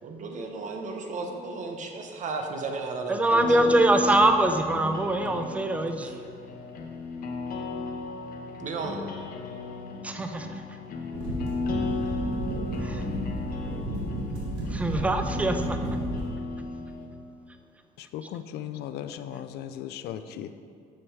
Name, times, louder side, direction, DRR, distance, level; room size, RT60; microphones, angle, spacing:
voice 1, 0.0-3.8 6.0-6.1 8.6-9.0, right 3 dB, 45° right, 3 dB, 1.0 m, -34 dB
voice 2, 3.1-6.2 10.0-10.8 12.8-13.3 14.7-15.8, right 2 dB, 10° right, 6 dB, 0.5 m, -24 dB
sound 1, 3.4-17.1, left 3 dB, 60° left, 0.9 m, -35 dB
sound 2, 11.1-16.3, right 1 dB, 85° right, 1.7 m, -32 dB
voice 3, 18.0-20.5, left 10 dB, 75° left, 11 dB, 0.4 m, -37 dB
7.0 x 6.1 x 4.7 m, 2.3 s
cardioid pair, 110°, 17 cm